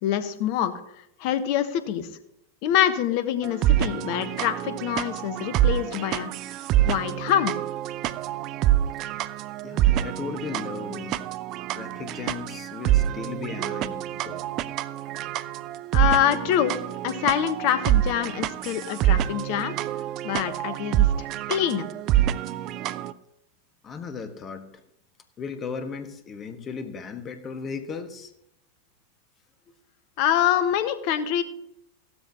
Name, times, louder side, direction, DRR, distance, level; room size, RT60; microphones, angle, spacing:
voice 1, 0.0-0.7 1.2-2.1 2.6-6.3 6.9-7.5 15.9-16.8 17.0-19.7 20.2-21.9 30.2-31.4, left 10 dB, 45° left, 11 dB, 1.2 m, -25 dB
sound 1, 3.4-23.1, right 13 dB, 35° right, 0.5 m, -26 dB
voice 2, 9.6-11.2 11.7-14.5 23.8-24.8 25.4-28.3, left 5 dB, 25° left, 8 dB, 1.5 m, -36 dB
16.0 x 12.5 x 2.9 m, 0.77 s
figure-of-eight pair, 90°, 0 cm